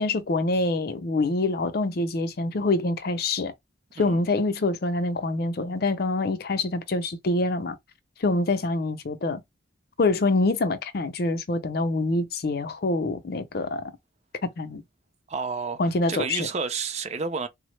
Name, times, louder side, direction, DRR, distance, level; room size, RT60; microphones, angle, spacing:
voice 1, 0.0-3.5 4.0-7.8 8.2-9.4 10.0-13.9 14.6-14.8 15.8-16.5, left 2 dB, 55° left, 0.5 m, -25 dB
voice 2, 15.3-15.8 16.1-17.5, right 5 dB, 35° right, 0.4 m, -30 dB
3.5 x 2.0 x 3.1 m
head